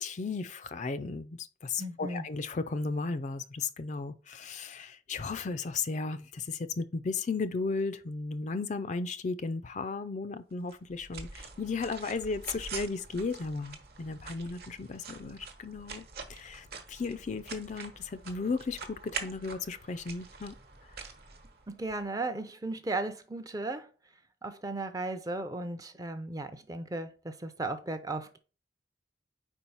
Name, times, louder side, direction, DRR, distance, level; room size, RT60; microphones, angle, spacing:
voice 1, 0.0-16.0 16.3-20.5, left 4 dB, 40° left, 0.4 m, -35 dB
voice 2, 1.8-2.2 21.7-23.9 24.4-28.4, right 2 dB, 20° right, 0.5 m, -36 dB
sound 1, 10.7-22.0, right 5 dB, 55° right, 1.1 m, -45 dB
4.7 x 4.5 x 5.5 m
head